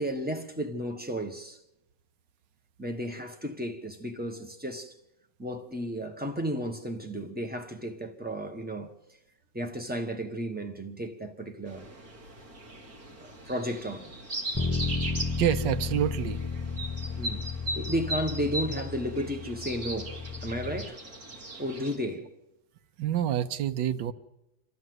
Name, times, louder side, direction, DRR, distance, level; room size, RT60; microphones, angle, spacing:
voice 1, 0.0-1.6 2.8-4.9 5.4-8.9 9.5-11.9 13.2-14.1 17.2-17.5 17.7-21.0 21.6-22.3, equal, 5° right, 1.0 m, -33 dB
sound 1, 11.7-22.0, right 1 dB, 50° right, 3.2 m, -39 dB
Bass guitar, 14.5-20.8, left 4 dB, 20° left, 0.5 m, -33 dB
voice 2, 15.4-16.4 23.0-24.1, right 10 dB, 75° right, 1.5 m, -27 dB
27.0 x 12.5 x 7.9 m
omnidirectional pair, 2.0 m